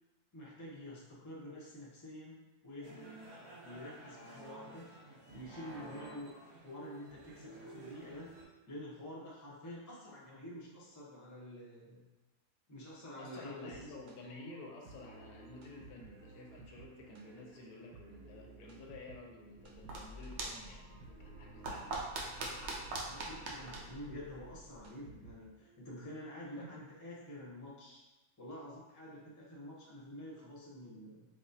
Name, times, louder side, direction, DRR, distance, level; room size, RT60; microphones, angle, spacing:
voice 1, 0.3-3.1 3.6-4.9 5.3-6.3 6.6-8.3 8.7-12.0 12.7-13.8 23.1-28.0 28.4-31.3, left 1 dB, 20° left, -5 dB, 0.6 m, -48 dB
sound 1, 2.8-8.4, right 1 dB, 35° right, 0.5 m, -52 dB
voice 2, 13.2-21.9 26.6-26.8, left 2 dB, 85° left, 0 dB, 1.1 m, -51 dB
sound 2, 13.5-25.7, right 3 dB, 85° right, 1.1 m, -57 dB
sound 3, 19.5-24.9, right 2 dB, 60° right, 0.8 m, -43 dB
4.6 x 2.0 x 2.7 m, 1.1 s
omnidirectional pair, 1.6 m